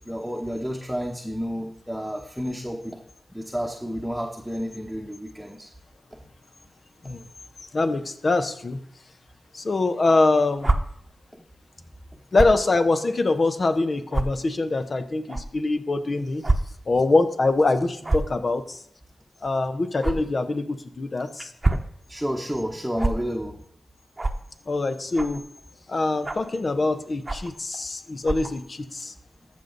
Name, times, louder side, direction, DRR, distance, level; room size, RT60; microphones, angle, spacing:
voice 1, 0.1-3.0 3.3-5.7 11.3-11.4 22.1-23.6, equal, 5° right, 0 dB, 1.2 m, -30 dB
voice 2, 7.7-8.8 9.5-10.8 12.3-16.4 16.9-18.8 19.4-21.5 24.7-25.4 25.9-29.1, left 3 dB, 50° left, 9 dB, 1.0 m, -24 dB
sound 1, 10.6-10.8 12.3-12.6 13.3-13.4 14.1-14.2 15.3-15.4 16.4-16.6 16.9-17.0 18.0-18.3 20.0-20.1 21.4-21.9 23.0-23.1 24.2-24.4 25.1-25.4 26.2-26.5 27.2-27.5 28.2-28.5, right 2 dB, 30° right, 0.9 m, -24 dB
14.0 x 5.5 x 4.0 m, 0.67 s
cardioid pair, 50°, 0 cm